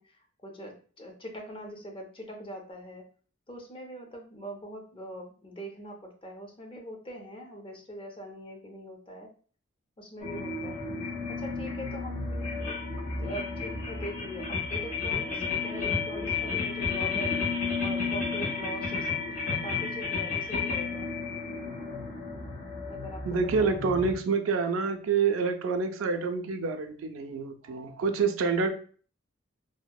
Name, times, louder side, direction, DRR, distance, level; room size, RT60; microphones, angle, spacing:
voice 1, 0.0-3.1 3.5-9.3 10.0-17.4 17.8-21.1 22.9-23.3 23.6-23.8, right 1 dB, 25° left, 2 dB, 0.4 m, -42 dB
sound 1, 10.2-24.2, left 4 dB, 80° left, 1.1 m, -32 dB
voice 2, 23.2-28.7, right 5 dB, 80° right, 7 dB, 0.4 m, -27 dB
2.7 x 2.0 x 2.2 m, 0.43 s
head